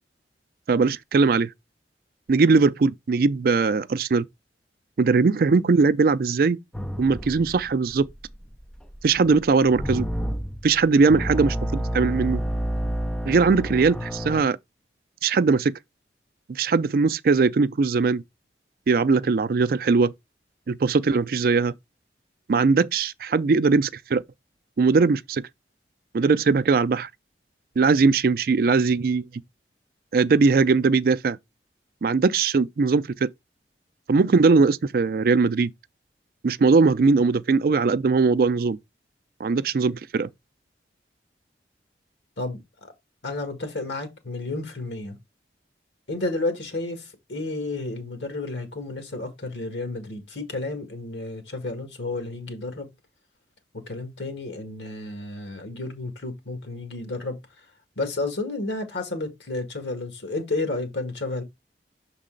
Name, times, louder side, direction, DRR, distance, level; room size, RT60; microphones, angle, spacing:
voice 1, 0.7-1.5 2.3-4.2 5.0-6.6 7.0-8.1 9.0-10.1 10.6-12.4 13.3-14.6 15.2-15.8 16.5-18.2 18.9-20.1 20.7-21.7 22.5-24.2 24.8-25.5 26.1-27.1 27.8-29.3 30.1-31.4 32.0-33.3 34.1-35.7 36.4-38.8 39.4-40.3, right 4 dB, 55° right, 0.4 m, -20 dB
sound 1, 6.7-14.4, equal, 5° left, 0.5 m, -30 dB
voice 2, 43.2-45.2 46.1-52.9 53.7-57.4 58.0-61.4, left 2 dB, 90° left, 1.7 m, -31 dB
6.5 x 4.0 x 3.8 m
head